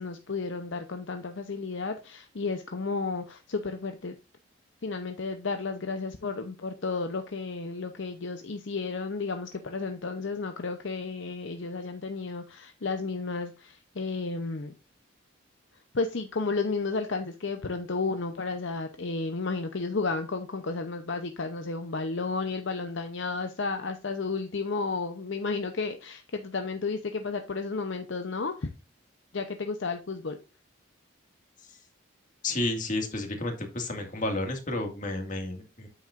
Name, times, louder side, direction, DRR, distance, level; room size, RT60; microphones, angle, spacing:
voice 1, 0.0-4.1 4.8-14.7 15.9-28.7 29.3-30.4, left 4 dB, 60° left, 0.7 m, -32 dB
voice 2, 32.4-35.9, left 2 dB, 40° left, 2.0 m, -31 dB
9.0 x 7.5 x 2.5 m
head